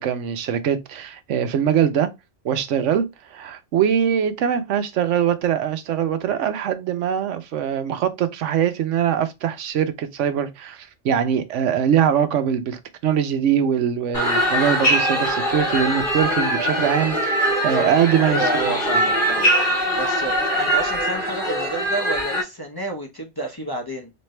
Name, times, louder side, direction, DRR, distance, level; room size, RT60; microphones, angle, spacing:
voice 1, 0.0-2.1 2.4-3.1 3.3-18.5, right 8 dB, 80° right, 1.0 m, -22 dB
sound 1, 14.1-22.4, equal, 45° left, 1.7 m, -22 dB
voice 2, 18.2-24.1, right 1 dB, 20° left, 0.7 m, -30 dB
4.3 x 2.6 x 3.1 m
omnidirectional pair, 1.2 m